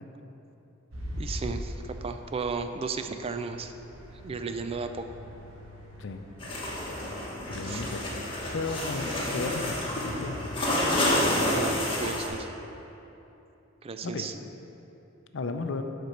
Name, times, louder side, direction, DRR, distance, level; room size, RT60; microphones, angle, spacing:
sound 1, 0.9-11.5, equal, 85° right, 1.5 m, -43 dB
voice 1, 1.2-1.7 2.0-3.7 4.2-5.1 7.7-7.8 11.5-12.5 13.8-14.3, right 4 dB, 30° right, 8 dB, 0.3 m, -34 dB
sound 2, 6.4-12.3, left 1 dB, 25° left, 1.4 m, -29 dB
voice 2, 7.4-8.0 8.5-10.5 14.0-14.3 15.3-15.8, left 3 dB, 70° left, 7 dB, 0.5 m, -34 dB
8.0 x 4.4 x 6.4 m, 2.9 s
head